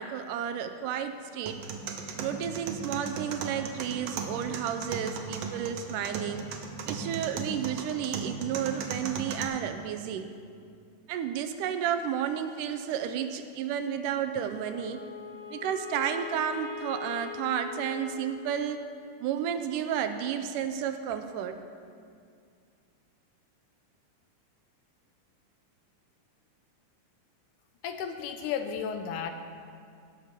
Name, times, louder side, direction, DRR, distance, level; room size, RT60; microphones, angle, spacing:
voice 1, 0.0-1.6 2.2-6.5 6.9-10.3 11.1-15.0 15.5-18.8 19.2-21.6, right 9 dB, 85° right, 8 dB, 2.2 m, -32 dB
sound 1, 1.5-9.4, right 5 dB, 65° right, 1.7 m, -37 dB
Wind instrument woodwind instrument, 14.4-18.9, left 6 dB, 50° left, 1.4 m, -42 dB
voice 2, 27.8-29.3, left 7 dB, 80° left, 6 dB, 2.1 m, -33 dB
17.5 x 5.8 x 6.7 m, 2.3 s
omnidirectional pair, 3.8 m